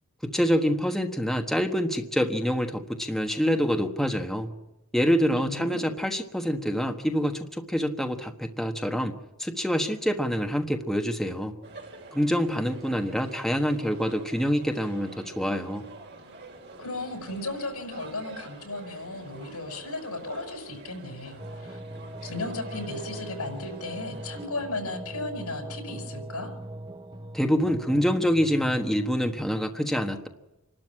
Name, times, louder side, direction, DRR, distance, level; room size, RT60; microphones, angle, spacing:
voice 1, 0.2-4.5 4.9-11.5 12.1-15.9 27.3-30.3, equal, ahead, 4 dB, 1.3 m, -26 dB
voice 2, 5.3-5.8 16.8-21.8 22.2-26.5, left 2 dB, 90° left, 5 dB, 6.0 m, -35 dB
sound 1, 11.6-24.5, right 2 dB, 50° right, 3.1 m, -47 dB
sound 2, 21.4-29.4, right 1 dB, 20° right, 0.8 m, -40 dB
27.5 x 12.5 x 8.7 m, 0.97 s
head